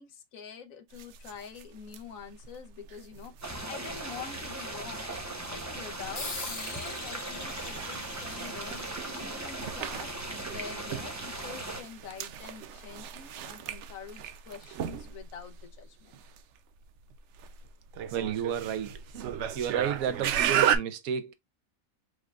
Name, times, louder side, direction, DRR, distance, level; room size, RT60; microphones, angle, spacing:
voice 1, 0.0-5.1 5.5-16.2, left 6 dB, 75° left, 1.3 m, -46 dB
sound 1, 0.9-20.8, right 9 dB, 65° right, 0.8 m, -36 dB
sound 2, 3.4-11.8, right 1 dB, 15° right, 0.6 m, -38 dB
sound 3, 6.2-11.1, left 3 dB, 40° left, 1.6 m, -43 dB
voice 2, 18.1-19.0 19.5-21.3, right 8 dB, 85° right, 1.2 m, -31 dB
4.9 x 3.3 x 2.3 m
omnidirectional pair, 1.4 m